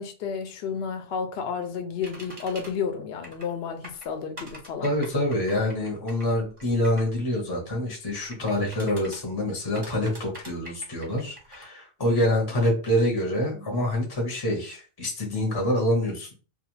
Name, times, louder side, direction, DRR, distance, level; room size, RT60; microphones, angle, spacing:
voice 1, 0.0-4.9 12.5-12.7 13.5-13.8, left 6 dB, 65° left, 0.7 m, -32 dB
sound 1, 2.0-2.7 3.2-3.5 3.8-7.1 8.1-9.2 9.7-11.7, equal, 30° right, 0.7 m, -44 dB
voice 2, 4.8-16.3, left 1 dB, 25° left, 0.6 m, -26 dB
2.4 x 2.2 x 3.0 m
omnidirectional pair, 1.3 m